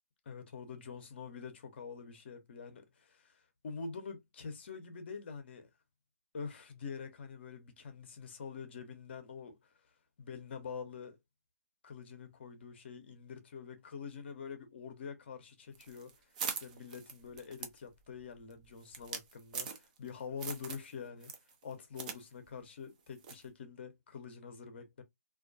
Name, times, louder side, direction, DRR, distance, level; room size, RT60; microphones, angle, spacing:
voice 1, 0.3-5.7 6.3-9.7 10.2-11.2 11.8-16.1 16.5-21.3 21.6-25.0, left 5 dB, 40° left, 0.6 m, -46 dB
sound 1, 15.8-20.1 20.4-20.9 21.2-22.2 22.5-22.6 23.2-23.5, right 6 dB, 30° right, 0.4 m, -42 dB
2.3 x 2.1 x 2.5 m
figure-of-eight pair, 150°, 9 cm